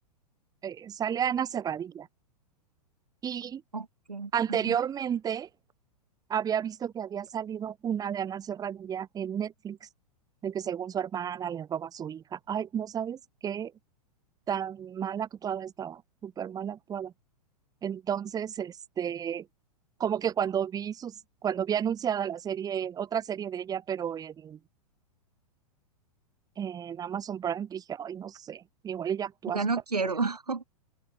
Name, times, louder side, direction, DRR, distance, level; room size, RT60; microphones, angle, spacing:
voice 1, 0.6-2.1 3.2-3.6 4.3-5.5 6.3-9.8 10.4-13.7 14.5-17.1 17.8-19.5 20.0-21.1 21.4-24.6 26.6-29.6 30.0-30.1, right 8 dB, 20° right, 3.8 m, -32 dB
voice 2, 3.7-4.8 29.5-30.6, right 4 dB, 75° right, 3.1 m, -31 dB
open air
figure-of-eight pair, 105°, 20 cm